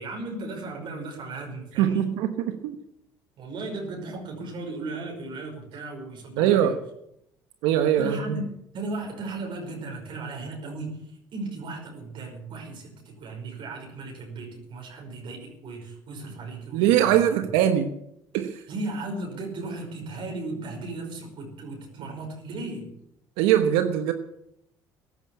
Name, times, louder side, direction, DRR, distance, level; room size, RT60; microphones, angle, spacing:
voice 1, 0.0-2.2 3.4-6.7 8.0-8.4 8.7-17.4 18.7-22.9, right 2 dB, 60° right, 2 dB, 5.2 m, -36 dB
voice 2, 1.8-2.3 2.6-2.8 6.4-6.8 7.6-8.4 16.7-17.9 18.3-18.6 23.4-24.1, right 10 dB, 80° right, 8 dB, 1.2 m, -21 dB
14.5 x 11.0 x 8.5 m, 0.78 s
supercardioid pair, 75°, 9 cm